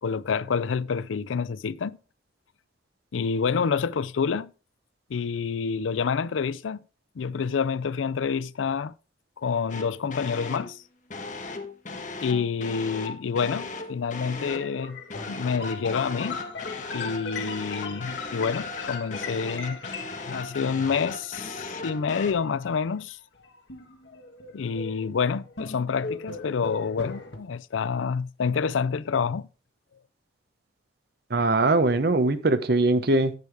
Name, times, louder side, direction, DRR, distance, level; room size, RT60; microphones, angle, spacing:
voice 1, 0.0-2.0 3.1-4.5 5.1-6.8 7.2-8.9 9.4-10.8 12.2-15.0 15.3-16.4 16.9-19.8 20.3-23.2 24.5-29.5, left 6 dB, 90° left, 0.4 m, -28 dB
sound 1, 9.7-10.7 11.1-14.7 15.1-22.3, left 3 dB, 40° left, 1.2 m, -37 dB
sound 2, 14.4-22.8 23.3-27.4, left 4 dB, 65° left, 1.5 m, -39 dB
voice 2, 31.3-33.3, right 2 dB, 55° right, 0.9 m, -21 dB
10.5 x 8.3 x 3.5 m
head